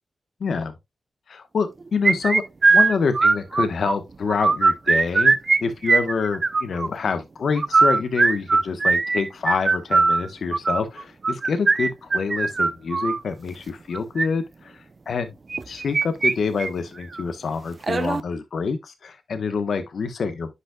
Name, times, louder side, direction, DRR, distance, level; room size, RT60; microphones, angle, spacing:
voice 1, 0.4-0.7 1.3-2.4 2.7-5.4 5.6-15.3 15.7-20.5, left 5 dB, 75° left, 1.1 m, -26 dB
sound 1, 2.0-3.9 4.3-5.6 5.8-6.9 7.6-13.2 13.9-14.3 15.5-16.3 16.6-16.7 17.1-17.2 17.8-18.2, right 3 dB, 50° right, 0.6 m, -19 dB
9.6 x 5.6 x 2.3 m
cardioid pair, 55°, 0 cm